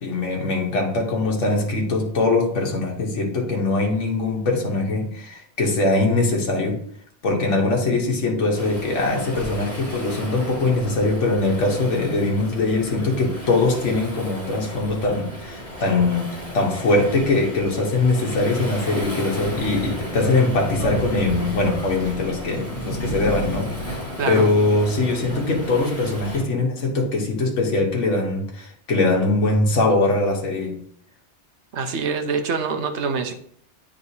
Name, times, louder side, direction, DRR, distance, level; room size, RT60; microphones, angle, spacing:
voice 1, 0.0-6.8 7.2-23.7 24.3-30.8, left 2 dB, 80° left, 0 dB, 1.4 m, -22 dB
Waves surf, 8.5-26.4, equal, 10° left, 2.1 m, -35 dB
Thunder, 19.3-24.4, equal, 45° left, 1.4 m, -32 dB
voice 2, 22.9-23.2 24.2-24.5 31.7-33.3, right 5 dB, 70° right, 6 dB, 1.0 m, -26 dB
9.4 x 3.7 x 2.8 m, 0.62 s
omnidirectional pair, 1.2 m